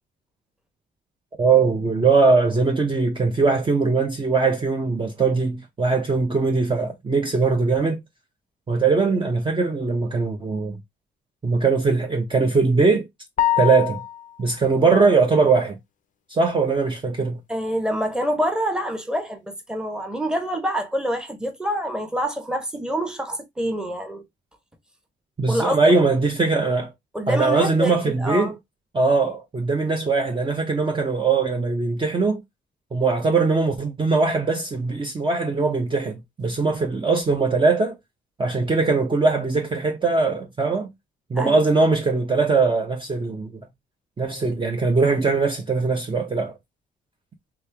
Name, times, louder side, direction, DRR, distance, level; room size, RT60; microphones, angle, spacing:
voice 1, 1.4-8.0 8.7-10.8 11.4-13.0 13.6-14.0 14.4-15.8 16.3-17.4 25.4-26.9 27.3-28.5 28.9-32.4 32.9-38.0 38.4-40.9 41.3-43.7 44.2-46.5, right 4 dB, 25° right, 0.7 m, -21 dB
sound 1, 13.4-14.4, left 13 dB, 40° left, 0.4 m, -23 dB
voice 2, 17.5-24.2 25.5-25.9 27.1-28.5 41.3-41.6, equal, 5° right, 1.0 m, -26 dB
3.2 x 2.9 x 3.3 m
cardioid pair, 90°, 20 cm